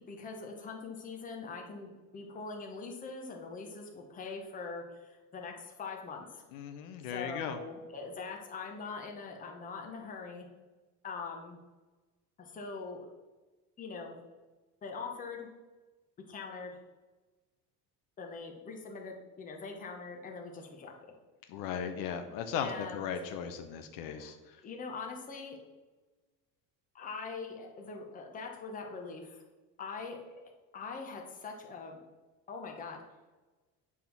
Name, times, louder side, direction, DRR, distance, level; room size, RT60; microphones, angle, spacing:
voice 1, 0.1-6.4 7.0-10.5 11.0-11.6 12.4-13.1 13.8-14.2 14.8-15.5 16.3-16.8 18.2-20.9 22.5-23.1 24.2-24.3 24.6-25.6 26.9-29.4 29.8-30.2 30.7-32.0 32.5-33.0, left 4 dB, 25° left, 1 dB, 1.0 m, -42 dB
voice 2, 6.5-7.6 21.5-24.4, left 7 dB, 70° left, 7 dB, 0.8 m, -37 dB
8.4 x 3.7 x 5.9 m, 1.2 s
cardioid pair, 165°, 35 cm